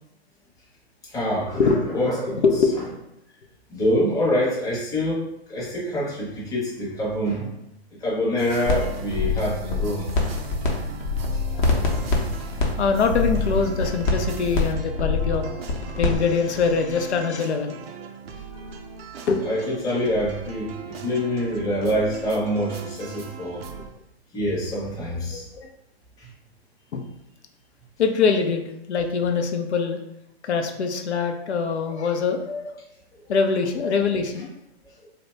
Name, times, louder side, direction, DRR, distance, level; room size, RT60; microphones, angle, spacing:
voice 1, 1.0-2.4 3.7-7.5 8.0-10.1 11.3-11.4 19.4-23.6 24.3-25.5 26.2-26.3, equal, 10° left, -6 dB, 0.7 m, -25 dB
voice 2, 2.4-2.7 11.5-11.9 12.6-15.5 16.0-17.8 19.3-19.5 25.3-25.7 26.9-27.1 28.0-30.0 30.4-32.8 33.3-34.5, left 5 dB, 90° left, 5 dB, 0.5 m, -23 dB
sound 1, 8.4-23.9, right 6 dB, 65° right, 0.5 m, -38 dB
sound 2, 8.7-8.8 9.1-10.7 11.0-16.2, left 4 dB, 45° left, 0.7 m, -24 dB
2.7 x 2.1 x 3.2 m, 0.82 s
hypercardioid pair, 135°, 32 cm